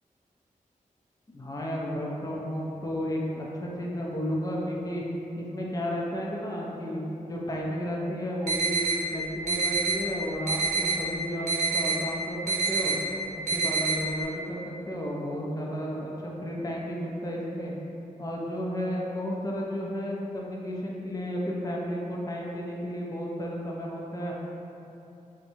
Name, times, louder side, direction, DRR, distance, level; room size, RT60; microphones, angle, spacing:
voice 1, 1.3-5.0 5.4-11.5 11.7-13.0 13.3-14.6 14.9-17.7 18.2-24.3, equal, 25° left, -3 dB, 0.5 m, -33 dB
sound 1, 8.5-9.0 9.5-10.0 10.5-11.0 11.5-12.0 12.5-12.9 13.5-13.9, right 4 dB, 60° right, 0.8 m, -26 dB
4.2 x 2.2 x 2.7 m, 2.9 s
wide cardioid pair, 75°, 14 cm